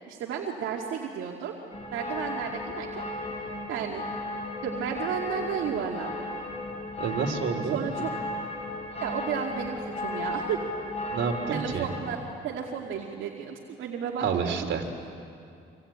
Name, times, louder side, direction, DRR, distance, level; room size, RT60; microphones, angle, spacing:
voice 1, 0.1-1.5 1.9-3.1 3.7-4.0 4.6-6.2 7.7-8.1 9.0-10.6 11.5-12.2 12.4-14.5, right 7 dB, 90° right, -1 dB, 2.4 m, -32 dB
sound 1, 1.7-12.0, left 1 dB, 30° left, 7.9 m, -35 dB
voice 2, 7.0-7.8 11.1-11.9 14.2-14.9, right 6 dB, 70° right, 3 dB, 3.3 m, -29 dB
27.0 x 25.0 x 8.9 m, 2.5 s
cardioid pair, 90°, 20 cm